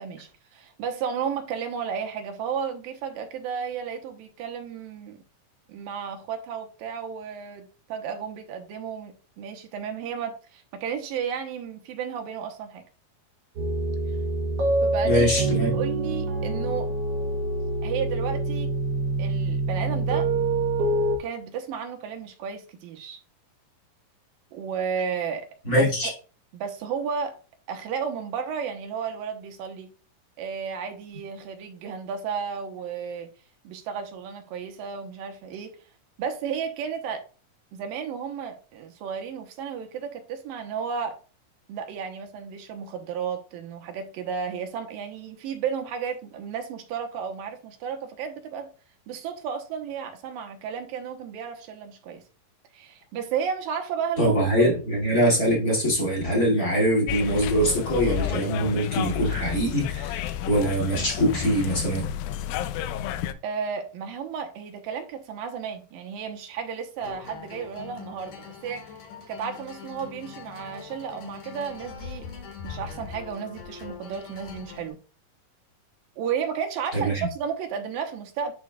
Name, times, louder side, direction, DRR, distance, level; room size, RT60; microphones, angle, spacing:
voice 1, 0.0-5.2 5.7-12.8 14.8-15.3 15.7-16.9 17.8-18.7 19.2-20.3 21.2-23.2 24.5-25.5 25.8-25.9 26.5-27.4 27.7-29.9 30.4-33.3 33.6-35.8 36.2-37.2 37.7-41.2 41.7-48.7 49.1-52.2 52.7-54.7 63.4-69.0 69.3-72.3 72.6-75.0 76.2-78.5, right 7 dB, 75° right, 2.6 m, -33 dB
sound 1, 13.6-21.2, right 2 dB, 60° right, 1.7 m, -26 dB
voice 2, 15.0-15.7 25.6-26.1 54.2-62.1 76.9-77.3, equal, 25° left, 2.4 m, -23 dB
sound 2, 57.1-63.3, left 11 dB, 80° left, 2.2 m, -31 dB
sound 3, 67.0-74.9, left 7 dB, 65° left, 3.0 m, -42 dB
10.5 x 4.7 x 2.3 m
omnidirectional pair, 4.2 m